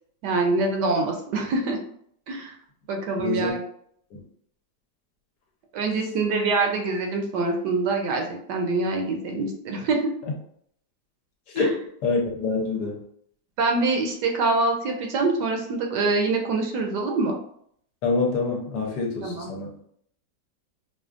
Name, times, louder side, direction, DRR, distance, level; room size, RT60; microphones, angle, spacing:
voice 1, 0.2-1.8 2.3-2.6 2.9-3.6 5.7-10.0 11.6-11.7 13.6-17.4 19.2-19.5, right 3 dB, 75° right, 2 dB, 1.2 m, -25 dB
voice 2, 3.2-3.5 4.1-4.2 11.5-13.0 18.0-19.7, left 4 dB, 70° left, 0 dB, 1.2 m, -26 dB
4.9 x 2.2 x 2.4 m, 0.66 s
omnidirectional pair, 2.0 m